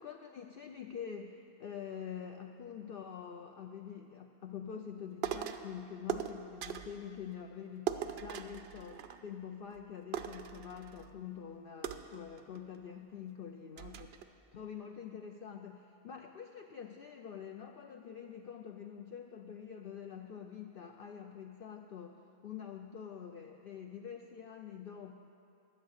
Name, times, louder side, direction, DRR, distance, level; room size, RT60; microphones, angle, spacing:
voice 1, 0.0-14.1 14.5-25.1, left 8 dB, 60° left, 3 dB, 0.6 m, -46 dB
sound 1, 5.2-5.7 6.1-7.0 7.9-9.5 9.7-9.8 10.1-11.1 11.8-12.8 13.3-13.4 13.8-14.2, right 10 dB, 65° right, 0.7 m, -40 dB
11.0 x 8.0 x 6.5 m, 2.6 s
omnidirectional pair, 1.3 m